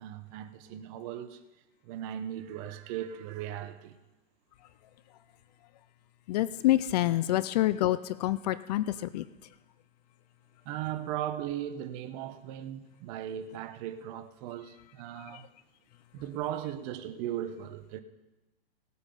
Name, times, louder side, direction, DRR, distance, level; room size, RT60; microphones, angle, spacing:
voice 1, 0.0-1.4 1.8-4.0 10.6-15.5 16.1-18.0, right 11 dB, 35° right, 1.0 m, -37 dB
voice 2, 6.3-9.3 15.2-15.4, left 15 dB, 40° left, 0.5 m, -27 dB
18.0 x 8.2 x 5.5 m
hypercardioid pair, 135°, 31 cm